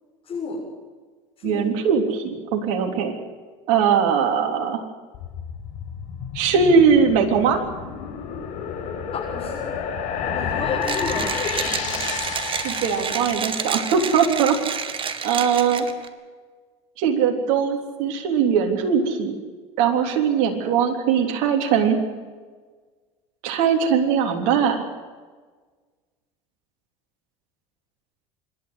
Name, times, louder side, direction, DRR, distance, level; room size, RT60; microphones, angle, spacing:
voice 1, 0.2-0.6 1.4-1.7 9.1-9.7 10.3-12.0, left 4 dB, 35° left, -5 dB, 7.2 m, -31 dB
voice 2, 1.4-3.2 3.7-4.8 6.3-7.6 12.6-14.6 15.2-15.9 17.0-19.4 19.8-22.0 23.4-24.8, right 6 dB, 65° right, 3 dB, 3.6 m, -20 dB
sound 1, 5.1-14.5, left 6 dB, 55° left, 5.2 m, -31 dB
Mechanisms, 10.8-16.1, right 6 dB, 35° right, 2.0 m, -29 dB
26.0 x 12.5 x 9.9 m, 1.4 s
hypercardioid pair, 80°, 16 cm